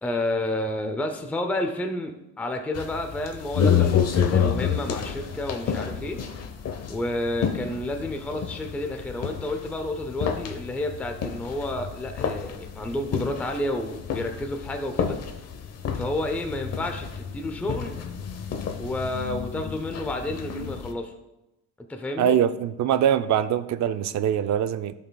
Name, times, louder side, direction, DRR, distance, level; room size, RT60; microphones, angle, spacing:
voice 1, 0.0-6.2 6.9-15.2 15.9-18.0 18.8-21.1 21.9-22.4, left 1 dB, 5° left, 5 dB, 0.5 m, -30 dB
sound 1, 2.7-20.9, left 7 dB, 40° left, 0.9 m, -29 dB
voice 2, 22.2-24.9, right 9 dB, 50° right, 11 dB, 0.5 m, -23 dB
15.5 x 5.7 x 2.2 m, 0.95 s
cardioid pair, 150°, 38 cm